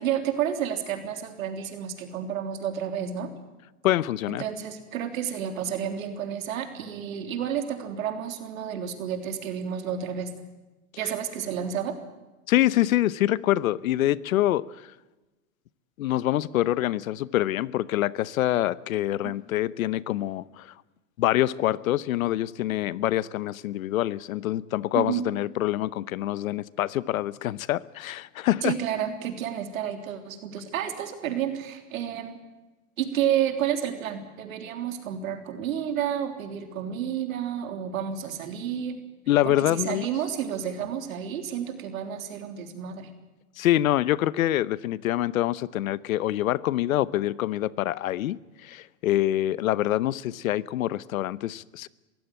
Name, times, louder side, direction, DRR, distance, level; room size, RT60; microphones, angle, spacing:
voice 1, 0.0-3.3 4.3-10.3 11.0-12.0 19.2-19.3 24.9-25.2 28.6-32.4 33.0-39.0 39.4-43.1, right 9 dB, 80° right, 3.5 m, -30 dB
voice 2, 3.8-4.4 12.5-14.6 16.0-20.7 21.2-28.7 39.3-40.1 43.6-51.9, left 14 dB, 85° left, 0.9 m, -25 dB
23.0 x 15.5 x 9.1 m
supercardioid pair, 140°, 41 cm